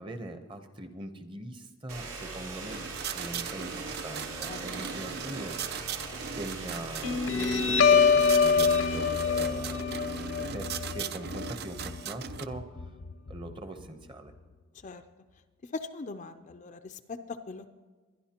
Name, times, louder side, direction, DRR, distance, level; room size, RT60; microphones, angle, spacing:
voice 1, 0.0-5.5 6.3-9.8 10.5-12.6 13.3-14.3, right 1 dB, 25° right, 8 dB, 0.8 m, -41 dB
sound 1, 1.9-10.6, right 3 dB, 90° right, 2.7 m, -41 dB
sound 2, 2.7-12.5, right 7 dB, 45° right, 0.4 m, -39 dB
Guitar, 7.0-14.0, left 6 dB, 70° left, 0.7 m, -26 dB
voice 2, 15.7-17.7, left 3 dB, 35° left, 8 dB, 0.4 m, -40 dB
22.0 x 11.0 x 2.9 m, 1.4 s
head